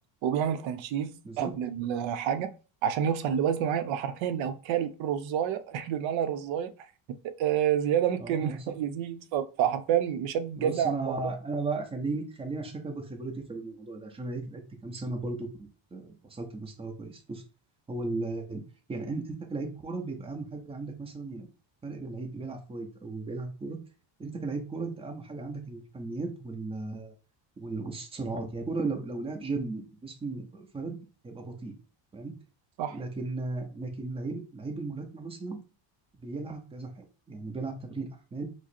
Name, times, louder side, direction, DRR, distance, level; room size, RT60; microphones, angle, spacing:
voice 1, 0.2-2.5 2.8-6.7 7.4-11.2 32.8-33.0, right 9 dB, 90° right, 0.6 m, -28 dB
voice 2, 1.2-1.6 8.2-8.7 10.6-17.4 17.9-18.6 18.9-21.5 21.8-23.8 24.2-27.1 27.6-31.0 31.2-31.7 32.1-32.3 32.9-35.6 36.2-38.5, right 3 dB, 15° right, 0.7 m, -36 dB
4.9 x 2.1 x 4.2 m
cardioid pair, 160°, 45 cm